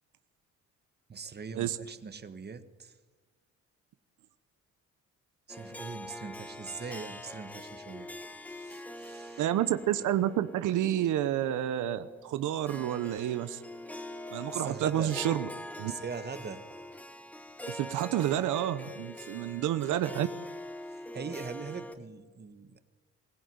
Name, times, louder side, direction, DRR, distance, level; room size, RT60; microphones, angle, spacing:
voice 1, 1.1-3.0 5.5-8.1 8.4-9.5 14.5-15.2 15.8-16.6 20.9-22.8, right 5 dB, 35° right, 10 dB, 1.6 m, -41 dB
Harp, 5.5-21.9, left 1 dB, 5° left, 1.6 m, -44 dB
voice 2, 9.4-13.6 14.3-15.5 15.8-15.9 17.7-20.3, right 12 dB, 80° right, 12 dB, 0.9 m, -29 dB
22.5 x 15.5 x 9.5 m, 1.3 s
cardioid pair, 90°, 30 cm